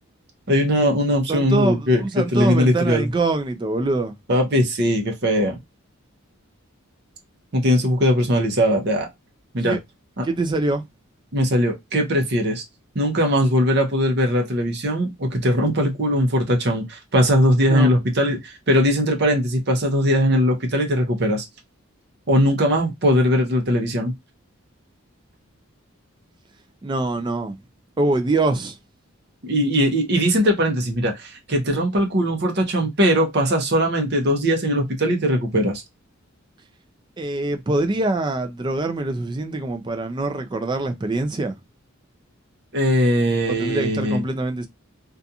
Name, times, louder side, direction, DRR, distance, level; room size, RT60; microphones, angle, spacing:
voice 1, 0.5-3.1 4.3-5.6 7.5-9.1 9.5-9.8 10.2-10.3 11.3-12.6 12.9-21.4 22.3-24.1 29.4-35.8 42.7-44.2, equal, 50° right, 0.7 m, -20 dB
voice 2, 1.3-4.1 9.6-9.8 10.2-10.8 17.7-17.9 26.8-27.6 28.0-28.8 37.2-41.6 43.5-44.7, right 2 dB, 20° right, 0.3 m, -24 dB
2.4 x 2.3 x 2.6 m
head